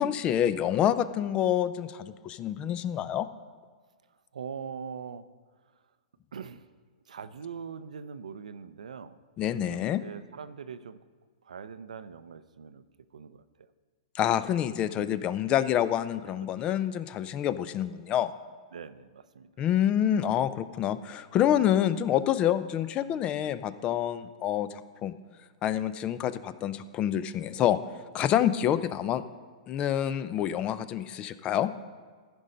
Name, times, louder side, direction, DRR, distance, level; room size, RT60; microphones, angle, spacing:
voice 1, 0.0-3.3 9.4-10.0 14.1-18.3 19.6-25.1 25.6-27.8 28.1-29.2 29.7-31.7, left 10 dB, 30° left, 14 dB, 0.4 m, -27 dB
voice 2, 4.3-5.3 6.3-6.7 7.1-9.2 9.6-11.0 11.4-12.8 13.1-13.7 16.4-16.9 18.7-19.5 28.3-28.5, right 6 dB, 90° right, 13 dB, 0.5 m, -42 dB
14.0 x 5.4 x 5.1 m, 1.5 s
hypercardioid pair, 130°, 4 cm